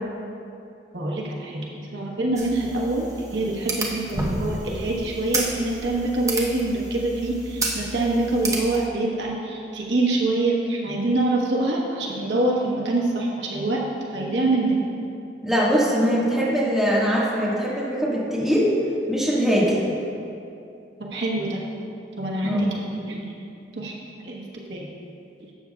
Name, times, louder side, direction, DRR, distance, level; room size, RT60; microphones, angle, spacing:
voice 1, 0.9-3.1 3.3-13.8 14.1-14.8 21.1-21.6 22.2-23.3 23.8-23.9 24.2-24.4 24.7-24.9, right 2 dB, 85° right, -3 dB, 1.2 m, -25 dB
sound 1, 2.4-8.9, right 2 dB, 20° right, 0.9 m, -31 dB
voice 2, 15.4-18.7 19.1-19.7 22.4-22.7, equal, ahead, -8 dB, 1.7 m, -22 dB
12.5 x 7.8 x 2.4 m, 2.6 s
head